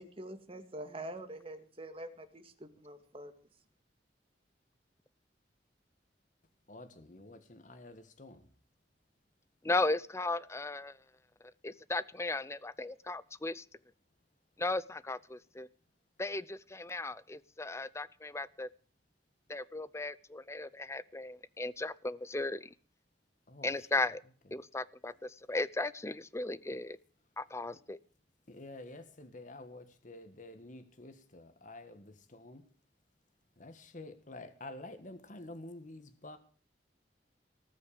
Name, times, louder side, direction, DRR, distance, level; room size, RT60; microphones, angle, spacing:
voice 1, 0.0-3.3, right 1 dB, 35° right, 1.9 m, -45 dB
voice 2, 6.7-8.5 23.5-23.7 28.5-32.6 33.6-36.4, left 2 dB, 45° left, 1.6 m, -49 dB
voice 3, 9.6-11.0 11.6-13.6 14.6-15.7 16.2-18.7 19.5-22.7 23.6-24.2 24.5-27.0 27.4-28.0, left 2 dB, 15° left, 0.6 m, -36 dB
19.0 x 6.4 x 8.6 m
head